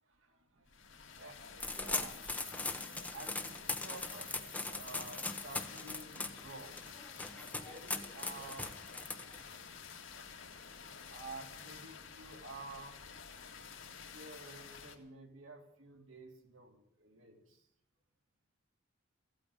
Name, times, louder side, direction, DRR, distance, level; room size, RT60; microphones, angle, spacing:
voice 1, 0.0-1.4 1.8-2.2 3.1-7.1 7.6-8.8 11.1-13.0 14.1-17.7, right 2 dB, 75° right, 2 dB, 3.1 m, -51 dB
sound 1, 0.7-15.0, left 6 dB, 70° left, 2.0 m, -51 dB
sound 2, 1.6-9.6, left 3 dB, 5° left, 0.9 m, -40 dB
16.0 x 8.9 x 9.9 m, 0.77 s
head